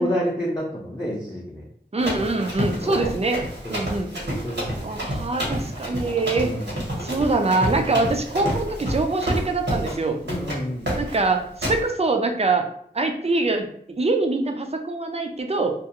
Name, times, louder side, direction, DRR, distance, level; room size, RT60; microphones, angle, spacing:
voice 1, 0.0-1.6 2.0-2.1 2.8-3.0 3.6-3.8 4.4-5.0 6.3-6.7 7.1-7.3 10.2-11.0, equal, 20° left, -6 dB, 0.6 m, -29 dB
voice 2, 1.9-3.4 3.7-4.1 4.8-6.5 7.0-10.2 11.0-12.7 12.9-15.7, right 3 dB, 35° right, 4 dB, 0.4 m, -24 dB
Run, 2.0-10.0 10.3-10.6 10.9-11.2 11.6-11.8, equal, 85° right, 1.1 m, -29 dB
2.4 x 2.3 x 2.8 m, 0.65 s
wide cardioid pair, 55°, 18 cm